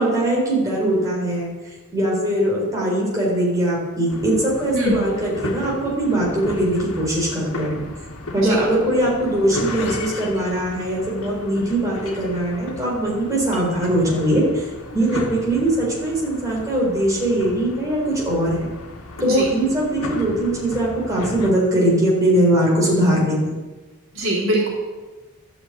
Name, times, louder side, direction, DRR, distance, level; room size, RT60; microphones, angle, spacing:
voice 1, 0.0-1.5 1.9-7.8 8.3-14.6 14.9-18.7 19.2-23.4, right 1 dB, 15° right, -5 dB, 4.2 m, -21 dB
sound 1, 4.1-21.5, left 2 dB, 90° left, 1.5 m, -35 dB
voice 2, 24.1-24.7, right 1 dB, 65° right, -5 dB, 3.9 m, -22 dB
12.0 x 6.7 x 8.5 m, 1.2 s
head